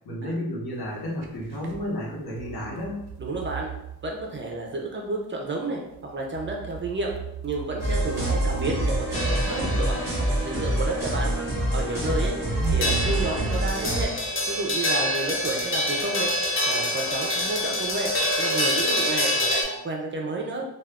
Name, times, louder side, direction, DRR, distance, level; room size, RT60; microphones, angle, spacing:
voice 1, 0.0-3.0 12.6-13.3, left 1 dB, 80° left, -4 dB, 1.0 m, -32 dB
sound 1, 0.9-1.8 2.4-4.8 5.9-10.3 11.2-11.3 12.6-14.5, right 10 dB, 85° right, 0.5 m, -35 dB
voice 2, 3.2-3.7 4.0-7.1 7.4-11.3 11.7-12.3 12.7-14.1 14.5-16.3 16.6-18.1 18.4-20.6, right 2 dB, 35° right, 0 dB, 0.4 m, -31 dB
sound 2, 7.8-14.0, right 1 dB, 10° right, 0.8 m, -26 dB
sound 3, 9.1-19.6, left 1 dB, 35° left, 0.5 m, -27 dB
2.3 x 2.3 x 3.4 m, 0.86 s
wide cardioid pair, 175°, 37 cm